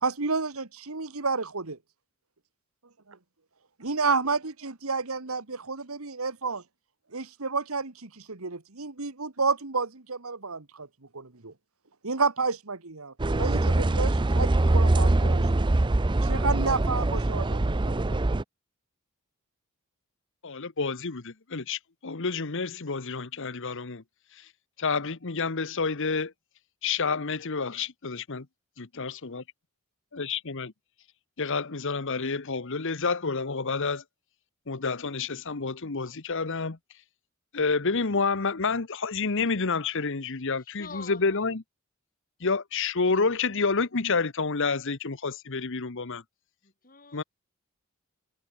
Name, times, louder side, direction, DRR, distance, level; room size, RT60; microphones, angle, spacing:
voice 1, 0.0-1.8 3.1-3.2 3.8-6.6 7.1-10.9 11.1-11.5 12.0-15.7 16.2-18.2, right 4 dB, 70° right, 1.7 m, -30 dB
sound 1, 13.2-18.4, right 2 dB, 20° right, 0.5 m, -23 dB
voice 2, 20.4-24.0 24.8-26.3 26.8-28.4 28.8-29.4 30.1-30.7 31.4-34.0 34.7-36.8 37.5-41.6 42.4-46.2 47.1-47.2, left 4 dB, 60° left, 1.1 m, -29 dB
voice 3, 40.6-41.5 46.6-47.2, left 5 dB, 40° left, 5.8 m, -46 dB
head